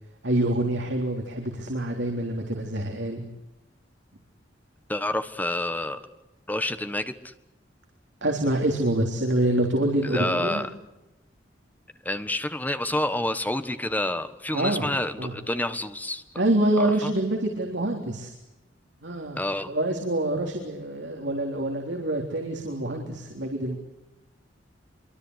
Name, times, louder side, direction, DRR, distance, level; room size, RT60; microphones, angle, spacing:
voice 1, 0.2-3.2 8.2-10.7 14.5-14.9 15.2-15.4 16.4-18.3 19.0-19.4 19.7-23.8, right 1 dB, 65° right, 2 dB, 3.7 m, -26 dB
voice 2, 4.9-6.0 6.5-7.3 10.1-10.7 12.0-16.2 16.8-17.1 19.4-19.7, left 1 dB, 10° left, 10 dB, 1.4 m, -28 dB
26.0 x 24.0 x 8.2 m, 0.95 s
head